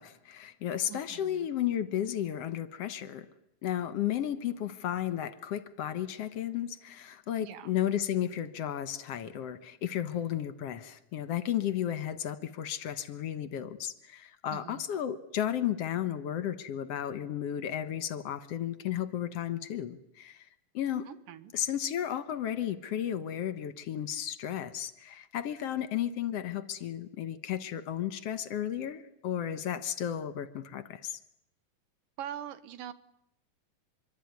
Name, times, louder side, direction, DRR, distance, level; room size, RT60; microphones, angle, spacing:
voice 1, 0.0-3.3 3.6-20.5 20.7-21.1 21.5-31.2, left 10 dB, 60° left, 13 dB, 1.9 m, -33 dB
voice 2, 0.9-1.5 7.4-7.7 14.5-14.8 21.1-21.5 32.2-32.9, right 10 dB, 80° right, 14 dB, 2.8 m, -43 dB
25.5 x 23.5 x 9.6 m, 0.78 s
omnidirectional pair, 3.9 m